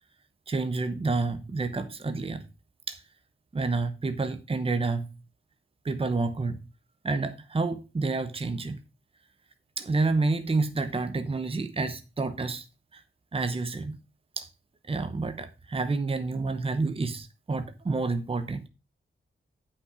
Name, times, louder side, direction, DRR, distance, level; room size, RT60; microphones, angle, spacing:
voice 1, 0.5-2.5 2.9-3.0 3.5-5.1 5.8-6.6 7.0-8.8 9.8-12.6 12.9-13.0 13.3-14.0 14.4-14.5 14.9-18.7, right 3 dB, 30° right, 0.9 m, -29 dB
9.4 x 5.8 x 4.9 m
wide cardioid pair, 125°, 20 cm